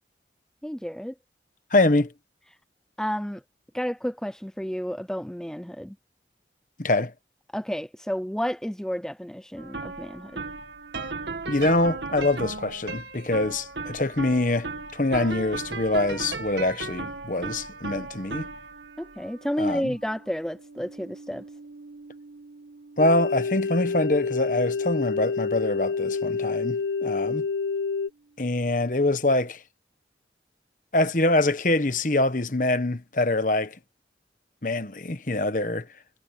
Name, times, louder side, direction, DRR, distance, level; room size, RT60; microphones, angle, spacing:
voice 1, 0.6-1.1 3.0-3.4 3.7-6.0 6.9-7.0 7.5-10.4 19.0-21.4, equal, 5° left, 0.5 m, -31 dB
voice 2, 1.7-2.1 6.8-7.1 11.5-18.5 19.6-19.9 23.0-27.4 28.4-29.6 30.9-33.8 34.6-35.9, left 2 dB, 45° left, 1.2 m, -24 dB
sound 1, 9.6-26.8, right 3 dB, 85° right, 2.4 m, -38 dB
sound 2, 23.0-28.1, left 5 dB, 80° left, 1.3 m, -28 dB
head